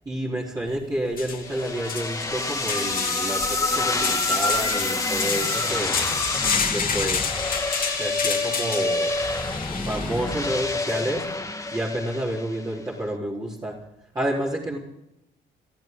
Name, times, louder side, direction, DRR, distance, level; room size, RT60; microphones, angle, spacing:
voice 1, 0.0-5.9 6.7-7.4 7.9-9.2 9.7-11.3 11.7-13.8 14.1-14.8, right 1 dB, 20° right, -7 dB, 4.3 m, -29 dB
sound 1, 0.7-0.8 1.1-10.7, left 6 dB, 45° left, 2.6 m, -29 dB
sound 2, 1.4-12.7, left 2 dB, 15° left, 1.8 m, -28 dB
24.5 x 14.0 x 4.0 m, 0.86 s
cardioid pair, 90°, 20 cm